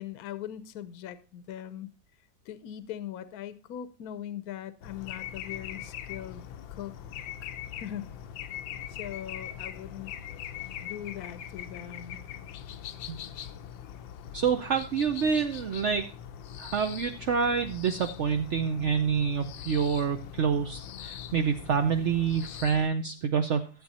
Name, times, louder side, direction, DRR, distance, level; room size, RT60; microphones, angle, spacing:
voice 1, 0.0-1.9 2.5-6.9 7.4-8.2 8.9-10.2 10.8-12.3, left 11 dB, 60° left, 13 dB, 1.1 m, -40 dB
sound 1, 4.8-22.9, left 10 dB, 90° left, 1.4 m, -41 dB
voice 2, 14.3-16.1 16.6-23.7, right 6 dB, 70° right, 6 dB, 0.6 m, -27 dB
12.5 x 7.7 x 4.1 m, 0.37 s
omnidirectional pair, 2.0 m